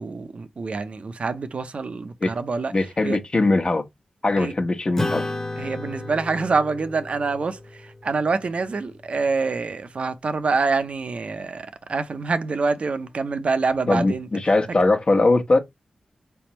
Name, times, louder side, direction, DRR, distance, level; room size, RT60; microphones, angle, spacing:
voice 1, 0.0-2.7 3.0-3.2 4.4-4.5 5.6-14.3, right 4 dB, 65° right, 0.6 m, -26 dB
voice 2, 2.7-3.8 4.2-5.2 13.9-15.6, left 2 dB, 45° left, 1.0 m, -20 dB
Acoustic guitar / Strum, 5.0-9.7, left 2 dB, 20° left, 1.0 m, -33 dB
4.1 x 3.4 x 3.0 m
cardioid pair, 40°, 2 cm